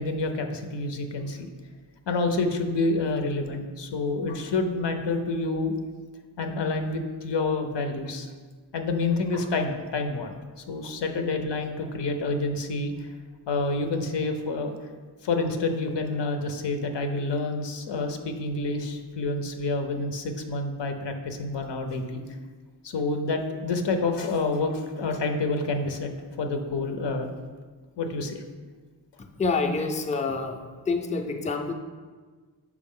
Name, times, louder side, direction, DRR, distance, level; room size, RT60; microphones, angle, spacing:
voice 1, 0.0-1.5 2.1-5.7 6.4-8.3 8.7-13.1 13.5-14.7 15.2-22.2 22.8-26.1 26.4-27.3 28.0-28.4, left 3 dB, 85° left, 5 dB, 0.7 m, -28 dB
voice 2, 29.4-31.7, left 4 dB, 20° left, 4 dB, 0.4 m, -27 dB
6.1 x 4.8 x 3.6 m, 1.5 s
wide cardioid pair, 90°, 41 cm